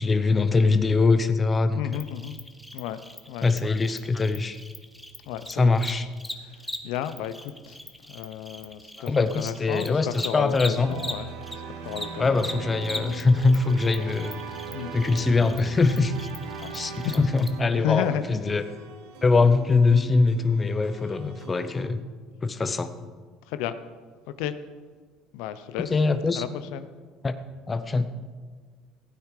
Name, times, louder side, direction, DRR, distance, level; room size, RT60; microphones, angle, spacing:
voice 1, 0.0-1.9 3.4-4.6 5.6-6.1 9.0-10.9 12.2-14.4 14.9-16.1 16.7-18.6 19.2-22.0 22.4-22.9 25.8-26.4 27.2-27.3 27.7-28.1, left 3 dB, 20° left, 11 dB, 0.8 m, -22 dB
voice 2, 1.7-2.4 2.7-3.0 3.3-3.5 5.3-5.7 6.0-6.1 6.4-7.8 8.1-12.4 12.9-13.2 14.7-14.9 16.5-17.2 17.7-18.2 23.5-23.7 24.3-24.5 25.3-25.9 26.4-26.9, left 10 dB, 80° left, 12 dB, 0.7 m, -33 dB
Cricket, 1.9-11.6 11.9-17.5, equal, 5° left, 1.2 m, -40 dB
sound 1, 10.8-21.9, right 5 dB, 80° right, 1.3 m, -40 dB
16.0 x 9.3 x 4.9 m, 1.5 s
cardioid pair, 115°, 0 cm